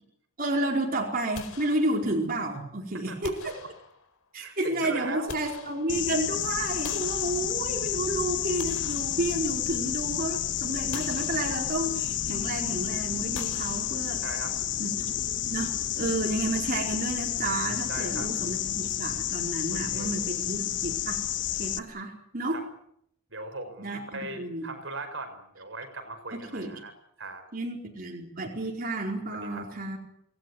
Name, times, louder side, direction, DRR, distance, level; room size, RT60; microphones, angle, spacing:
voice 1, 0.4-3.6 4.3-14.2 14.8-15.1 15.5-21.2 21.6-22.6 23.8-24.7 26.3-26.8 27.5-30.0, right 2 dB, 40° right, 1 dB, 4.6 m, -31 dB
sound 1, 1.3-2.4 3.2-4.3 4.9-6.3 6.8-7.9 8.4-9.8 10.2-10.4 10.9-12.0 13.3-14.5, left 5 dB, 85° left, 4.5 m, -45 dB
voice 2, 2.9-3.5 4.4-5.4 14.2-14.6 17.9-18.3 19.7-20.4 22.5-22.7 23.3-26.9 27.2-27.5 29.4-29.6, right 2 dB, 60° right, 8 dB, 5.1 m, -39 dB
sound 2, 5.9-21.8, left 11 dB, 55° left, 1.2 m, -30 dB
28.0 x 18.5 x 9.6 m, 0.71 s
head